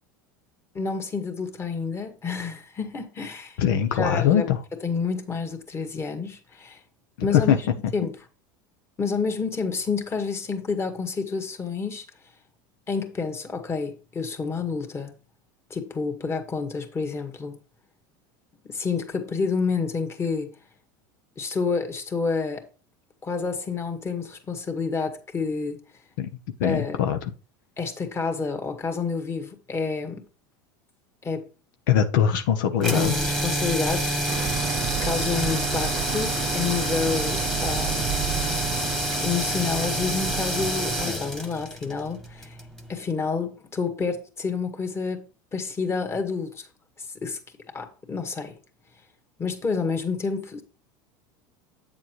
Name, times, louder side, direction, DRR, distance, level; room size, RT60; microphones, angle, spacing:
voice 1, 0.7-3.6 3.9-4.5 4.8-6.8 7.2-7.7 7.9-8.2 9.0-12.0 12.9-15.1 15.7-17.6 18.6-20.6 21.4-22.7 23.2-25.8 26.6-27.0 27.8-30.2 31.2-31.5 32.9-34.6 35.0-38.6 39.2-42.6 42.9-45.3 45.5-46.7 47.0-47.4 47.7-48.6 49.4-50.6, left 5 dB, 25° left, 1.9 m, -29 dB
voice 2, 3.6-4.6 7.3-7.6 26.2-26.3 26.6-27.2 31.9-33.1, left 9 dB, 75° left, 0.9 m, -21 dB
sound 1, 32.8-42.9, equal, 5° left, 1.5 m, -27 dB
sound 2, 34.3-41.1, right 16 dB, 50° right, 0.4 m, -32 dB
8.8 x 7.3 x 3.1 m
supercardioid pair, 115°, 11 cm